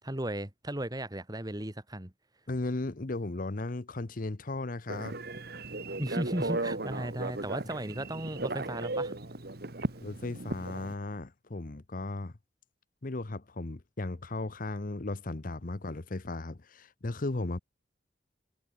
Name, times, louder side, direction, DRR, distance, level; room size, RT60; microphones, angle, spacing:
voice 1, 0.0-2.1 6.0-9.1, right 1 dB, 20° right, 1.9 m, -35 dB
voice 2, 2.5-5.2 10.0-12.3 13.0-17.6, left 2 dB, 50° left, 0.9 m, -36 dB
Telephone, 4.9-10.9, right 2 dB, 55° right, 1.9 m, -36 dB
head